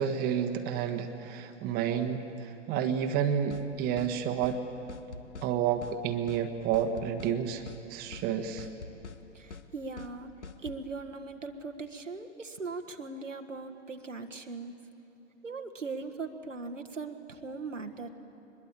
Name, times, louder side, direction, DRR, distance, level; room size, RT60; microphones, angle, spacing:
voice 1, 0.0-4.6 5.4-7.6 7.9-8.7, right 8 dB, 25° right, 7 dB, 1.3 m, -30 dB
sound 1, 3.5-3.7 4.0-4.1 4.4-4.6 4.9-5.5 5.8-6.0 6.3-6.4 6.7-7.4 7.7-7.8 8.1-8.3 8.6-9.2 9.5-9.7 10.0-10.1 10.4-10.8, left 4 dB, 65° left, 1.4 m, -44 dB
voice 2, 9.3-10.3 10.6-14.7 15.4-18.1, right 4 dB, 80° right, 6 dB, 1.5 m, -39 dB
22.5 x 21.0 x 8.7 m, 2.8 s
figure-of-eight pair, 105°, 37 cm